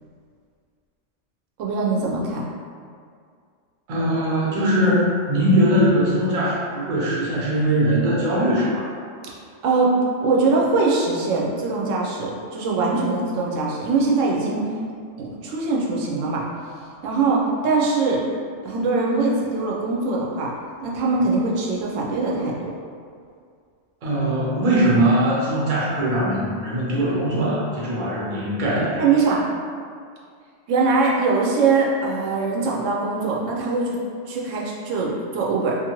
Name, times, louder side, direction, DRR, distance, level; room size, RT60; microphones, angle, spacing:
voice 1, 1.6-2.4 9.2-9.4 9.6-14.7 15.2-16.4 17.0-18.2 18.6-20.5 20.8-22.7 28.9-29.4 30.7-34.0 34.3-35.8, right 3 dB, 80° right, -3 dB, 0.9 m, -22 dB
voice 2, 3.9-8.9 24.0-29.0, right 1 dB, 45° right, -6 dB, 0.7 m, -21 dB
2.6 x 2.4 x 2.9 m, 2.2 s
omnidirectional pair, 1.3 m